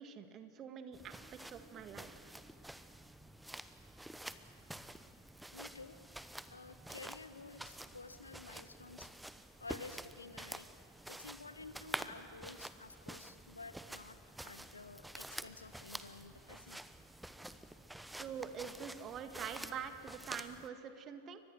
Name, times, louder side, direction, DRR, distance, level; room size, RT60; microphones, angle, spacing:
voice 1, 0.0-2.3 18.2-21.4, right 7 dB, 30° right, 8 dB, 1.8 m, -45 dB
sound 1, 0.9-20.7, right 1 dB, 5° right, 0.9 m, -49 dB
voice 2, 5.5-6.0 6.5-9.1 9.6-10.7 11.1-16.8, left 3 dB, 80° left, 11 dB, 1.2 m, -52 dB
29.0 x 25.0 x 6.5 m, 2.5 s
figure-of-eight pair, 90°, 0 cm